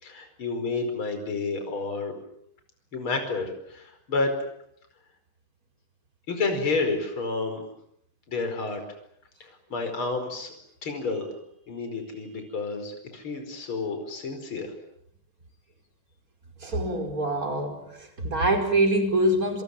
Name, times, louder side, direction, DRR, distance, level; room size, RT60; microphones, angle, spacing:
voice 1, 0.0-2.1 2.9-4.3 6.3-7.6 8.3-8.8 9.4-10.5 10.8-11.3 11.7-14.7, left 3 dB, 40° left, 6 dB, 5.8 m, -30 dB
voice 2, 16.6-17.9 18.2-19.6, right 1 dB, 25° right, 5 dB, 5.2 m, -24 dB
28.5 x 27.5 x 7.4 m, 0.73 s
omnidirectional pair, 3.4 m